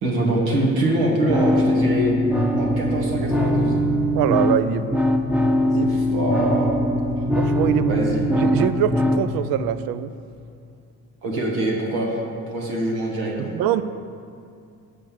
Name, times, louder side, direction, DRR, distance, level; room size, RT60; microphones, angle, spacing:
voice 1, 0.0-2.1 2.6-3.8 5.8-6.8 7.9-8.3 11.2-12.1 12.5-13.5, right 1 dB, 85° right, -2 dB, 1.7 m, -24 dB
sound 1, 1.3-9.3, left 1 dB, 5° right, 0.7 m, -21 dB
voice 2, 4.1-5.0 5.7-6.7 7.4-8.0 8.4-10.1 13.4-13.8, right 11 dB, 70° right, 13 dB, 0.5 m, -24 dB
6.7 x 5.3 x 6.8 m, 2.4 s
supercardioid pair, 60°, 37 cm